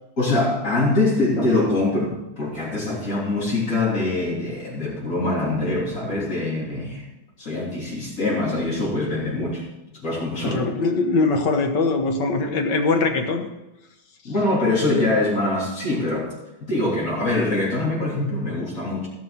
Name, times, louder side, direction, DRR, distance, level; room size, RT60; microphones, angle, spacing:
voice 1, 0.2-7.1 7.4-9.6 9.9-10.6 14.2-16.3 16.6-19.1, left 2 dB, 45° left, -5 dB, 3.8 m, -23 dB
voice 2, 10.4-13.5, left 3 dB, 65° left, 5 dB, 1.9 m, -22 dB
16.0 x 6.1 x 5.8 m, 1.0 s
omnidirectional pair, 2.1 m